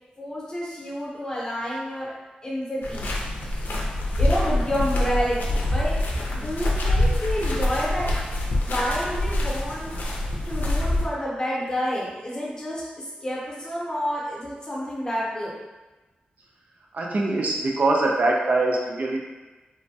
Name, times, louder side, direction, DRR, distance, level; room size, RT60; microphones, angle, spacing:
voice 1, 0.2-2.1 2.4-3.1 3.4-3.6 4.2-6.0 6.3-8.1 8.6-9.9 10.4-15.5, equal, 25° left, -5 dB, 0.7 m, -29 dB
sound 1, 2.8-11.1, left 1 dB, 75° left, 0.5 m, -25 dB
voice 2, 16.9-19.2, right 2 dB, 50° right, -1 dB, 0.4 m, -23 dB
3.1 x 2.1 x 2.7 m, 1.2 s
wide cardioid pair, 130°, 3 cm